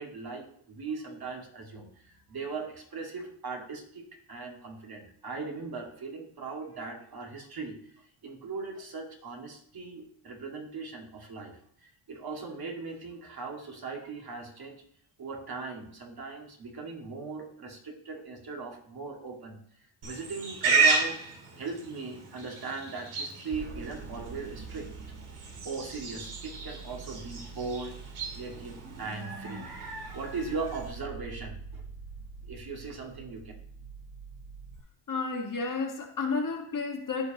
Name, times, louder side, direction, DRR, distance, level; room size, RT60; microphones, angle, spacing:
voice 1, 0.0-14.8 15.2-19.6 20.0-21.2 21.6-24.9 25.6-28.0 28.3-31.8 32.4-33.4, right 4 dB, 45° right, 0 dB, 2.2 m, -39 dB
Livestock farm animals working animals, 20.0-30.9, right 4 dB, 80° right, 2.5 m, -33 dB
sound 1, 23.5-34.8, right 5 dB, 25° right, 0.7 m, -45 dB
voice 2, 35.1-37.3, left 4 dB, 40° left, 3 dB, 1.6 m, -31 dB
14.0 x 5.0 x 3.0 m, 0.65 s
cardioid pair, 85°, 50 cm